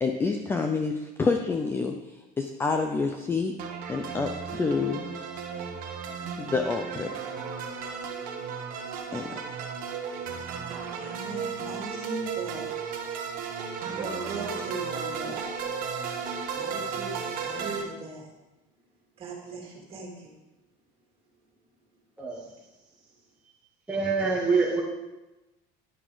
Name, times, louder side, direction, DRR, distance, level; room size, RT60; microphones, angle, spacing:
voice 1, 0.0-1.9 2.4-3.5 3.9-5.0 6.4-7.1 9.1-9.4, left 4 dB, 10° left, 4 dB, 0.4 m, -27 dB
sound 1, 3.6-17.8, right 6 dB, 45° right, 1.2 m, -34 dB
voice 2, 10.9-12.6 13.8-15.4 16.5-18.2 19.2-20.1, right 3 dB, 30° right, -1 dB, 2.7 m, -38 dB
voice 3, 23.9-24.8, right 4 dB, 5° right, -5 dB, 1.1 m, -25 dB
11.0 x 10.0 x 3.9 m, 1.0 s
cardioid pair, 180°, 20 cm